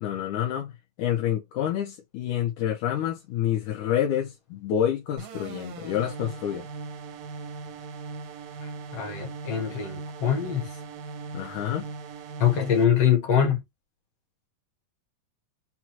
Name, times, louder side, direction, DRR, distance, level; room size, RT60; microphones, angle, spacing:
voice 1, 0.0-6.7 11.3-11.9, left 10 dB, 75° left, 2.1 m, -28 dB
sound 1, 5.2-12.9, right 4 dB, 75° right, 1.5 m, -39 dB
voice 2, 8.9-10.7 12.4-13.6, left 8 dB, 55° left, 2.2 m, -23 dB
5.9 x 2.3 x 2.8 m
omnidirectional pair, 3.8 m